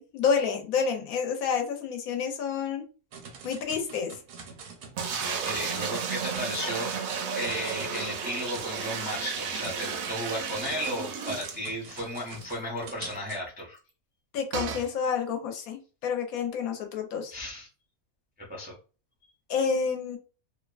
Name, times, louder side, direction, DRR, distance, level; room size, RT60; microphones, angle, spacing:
voice 1, 0.0-2.9 3.4-4.1 14.3-17.3 19.5-20.2, left 6 dB, 80° left, 5 dB, 1.1 m, -29 dB
sound 1, 3.1-5.4 5.7-6.1 6.3-13.4, right 5 dB, 85° right, 1.1 m, -45 dB
sound 2, 5.0-12.1 12.5-12.6 12.8-12.9 14.5-14.9, right 6 dB, 65° right, 0.7 m, -33 dB
voice 2, 5.1-13.8 17.3-17.7 18.4-18.8, equal, 15° right, -3 dB, 0.4 m, -35 dB
2.7 x 2.2 x 2.3 m, 0.35 s
omnidirectional pair, 1.5 m